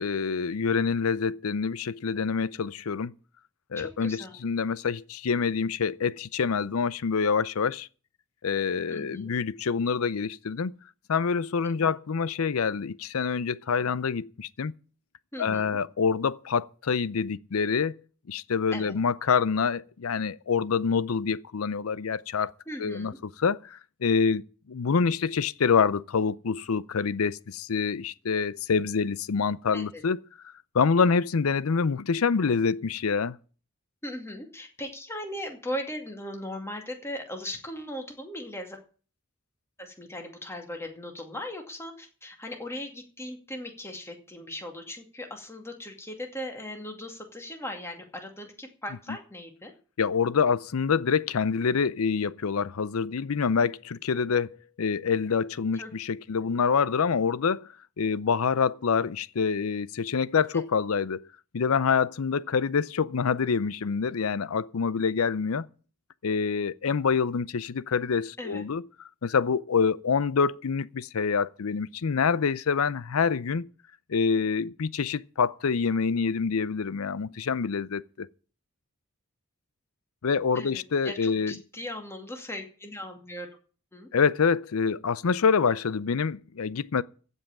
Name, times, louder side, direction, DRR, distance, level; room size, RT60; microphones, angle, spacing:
voice 1, 0.0-3.1 3.7-7.9 8.4-10.8 11.1-14.7 15.4-18.0 18.3-22.5 22.8-23.1 23.4-24.4 24.7-30.2 30.7-33.4 50.0-54.5 54.8-57.7 58.0-61.3 61.5-65.7 66.2-68.8 69.2-73.7 74.1-78.3 80.2-81.6 84.1-87.0, left 5 dB, 80° left, 0.6 m, -26 dB
voice 2, 3.7-4.4 8.9-9.3 11.8-11.9 15.3-15.8 18.7-18.9 22.7-23.2 29.7-30.0 34.0-38.8 39.8-49.7 55.8-55.9 56.3-56.5 60.5-60.6 68.4-68.6 80.5-83.5 83.9-84.1, left 1 dB, 10° left, 2.3 m, -38 dB
15.5 x 5.6 x 8.9 m
head